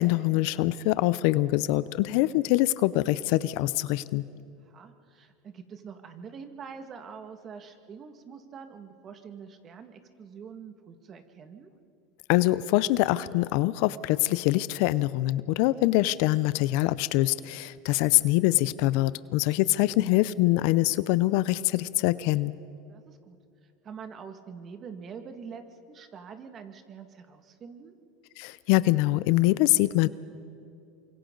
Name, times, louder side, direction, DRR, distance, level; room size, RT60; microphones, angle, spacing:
voice 1, 0.0-4.2 12.3-22.5 28.4-30.1, left 17 dB, 65° left, 17 dB, 0.6 m, -24 dB
voice 2, 4.7-11.7 19.8-20.0 22.8-23.4 23.8-27.9, right 6 dB, 35° right, 7 dB, 1.9 m, -45 dB
28.5 x 25.0 x 3.9 m, 2.5 s
supercardioid pair, 100°, 0 cm